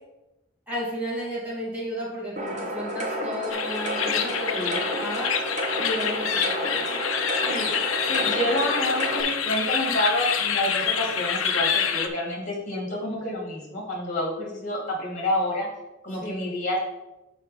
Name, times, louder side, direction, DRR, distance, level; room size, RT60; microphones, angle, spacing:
voice 1, 0.7-5.4 5.8-6.9 16.2-16.5, equal, 5° right, -6 dB, 2.1 m, -33 dB
sound 1, 2.4-9.2, equal, 35° right, 1.2 m, -31 dB
sound 2, 3.5-12.1, left 7 dB, 75° left, 0.7 m, -27 dB
voice 2, 4.5-4.9 6.8-7.1 7.4-7.7 8.1-15.7 16.0-16.8, left 1 dB, 40° left, -2 dB, 2.3 m, -28 dB
6.5 x 4.7 x 4.9 m, 0.98 s
head